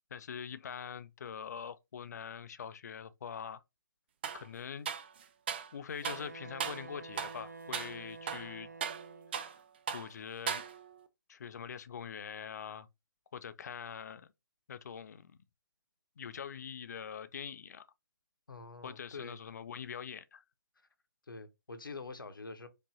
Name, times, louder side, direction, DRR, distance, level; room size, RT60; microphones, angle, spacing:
voice 1, 0.1-3.6 4.3-4.9 5.7-8.7 9.4-9.6 9.9-10.6 11.3-12.9 13.3-14.3 14.7-15.3 16.2-17.9 18.8-20.4, left 7 dB, 50° left, 0.3 m, -43 dB
sound 1, 4.2-4.5 4.9-5.7 6.0-6.3 6.6-6.9 7.2-7.4 7.7-8.0 8.3-9.6 9.9-10.1 10.5-11.0, right 7 dB, 30° right, 0.4 m, -38 dB
Wind instrument woodwind instrument, 6.0-9.5, right 4 dB, 50° right, 1.1 m, -49 dB
voice 2, 18.5-19.4 21.3-22.7, left 3 dB, 70° left, 0.8 m, -46 dB
4.8 x 2.6 x 2.8 m
figure-of-eight pair, 140°, 12 cm